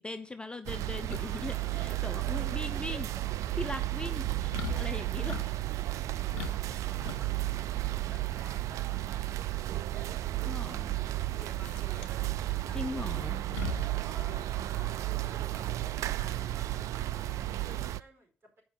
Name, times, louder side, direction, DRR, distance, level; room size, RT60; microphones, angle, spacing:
voice 1, 0.0-3.1 3.6-5.6 10.4-11.0 12.7-13.4, left 2 dB, 15° left, 9 dB, 0.8 m, -40 dB
sound 1, 0.7-18.0, right 15 dB, 65° right, 0.3 m, -33 dB
sound 2, 1.1-16.7, left 5 dB, 90° left, 0.6 m, -44 dB
voice 2, 1.1-1.7 2.7-3.0 6.1-7.4 7.7-13.3 14.0-18.6, equal, 45° right, 1 dB, 4.5 m, -55 dB
7.9 x 5.3 x 7.2 m, 0.38 s
hypercardioid pair, 45°, 6 cm